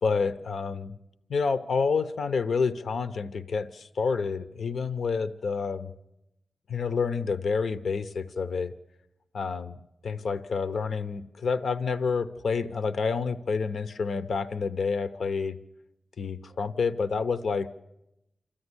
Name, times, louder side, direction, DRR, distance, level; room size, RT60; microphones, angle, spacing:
voice 1, 0.0-0.9 1.3-5.9 6.7-8.7 9.3-15.6 16.2-17.7, left 5 dB, 80° left, 11 dB, 0.8 m, -28 dB
26.5 x 14.5 x 9.8 m, 0.89 s
wide cardioid pair, 115°, 0 cm